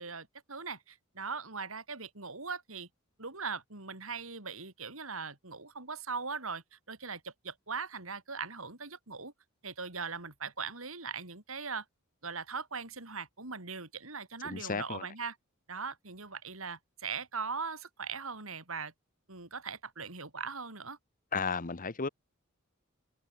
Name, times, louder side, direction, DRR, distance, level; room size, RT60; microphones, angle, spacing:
voice 1, 0.0-2.9 3.2-9.3 9.6-11.8 12.2-15.4 15.7-18.9 19.3-21.0, right 5 dB, 75° right, 5.3 m, -40 dB
voice 2, 14.4-15.1 21.3-22.1, left 5 dB, 40° left, 1.1 m, -34 dB
head